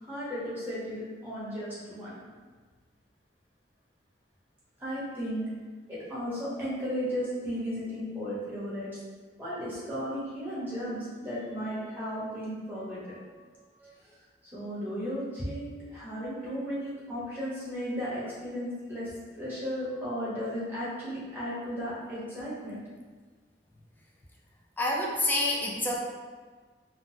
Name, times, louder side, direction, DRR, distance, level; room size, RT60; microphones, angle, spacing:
voice 1, 0.0-2.2 4.8-5.5 5.9-8.9 9.4-14.1 14.4-19.1 19.3-22.8, equal, 10° right, -10 dB, 1.1 m, -35 dB
voice 2, 24.8-26.0, left 1 dB, 10° left, -2 dB, 0.4 m, -27 dB
3.8 x 2.1 x 2.6 m, 1.5 s
head